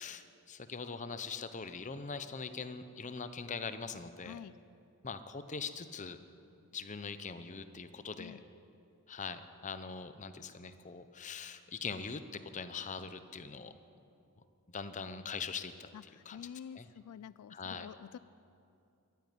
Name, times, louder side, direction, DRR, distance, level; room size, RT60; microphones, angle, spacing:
voice 1, 0.0-4.4 5.0-6.2 6.7-8.4 9.1-13.7 14.7-15.9 16.3-16.4 16.8-16.9 17.5-17.9, left 5 dB, 35° left, 11 dB, 0.7 m, -42 dB
voice 2, 15.9-18.2, left 8 dB, 90° left, 17 dB, 0.3 m, -48 dB
14.5 x 9.2 x 9.7 m, 2.6 s
head